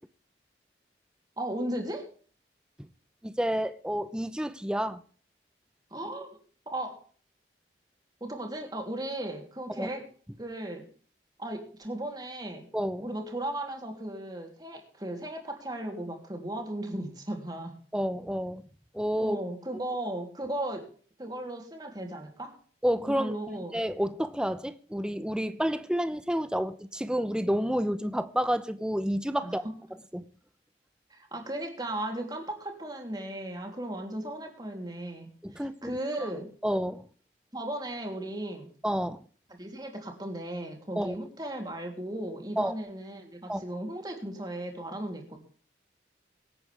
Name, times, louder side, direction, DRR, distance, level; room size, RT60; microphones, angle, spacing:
voice 1, 1.4-2.1 5.9-6.3 6.6-7.0 8.2-10.0 10.4-10.9 11.4-12.7 13.0-17.8 19.2-20.8 21.2-22.5 23.1-23.8 29.4-29.7 31.1-36.5 37.5-38.7 39.5-45.4, right 1 dB, 25° right, 3.3 m, -36 dB
voice 2, 3.2-5.0 9.8-9.9 12.7-13.1 17.9-18.6 18.9-19.4 22.8-29.6 30.1-30.2 35.4-35.9 36.2-36.3 36.6-37.1 38.8-39.2 41.0-41.2 42.6-42.7 43.5-43.6, equal, 5° right, 0.8 m, -29 dB
24.0 x 8.8 x 3.5 m
head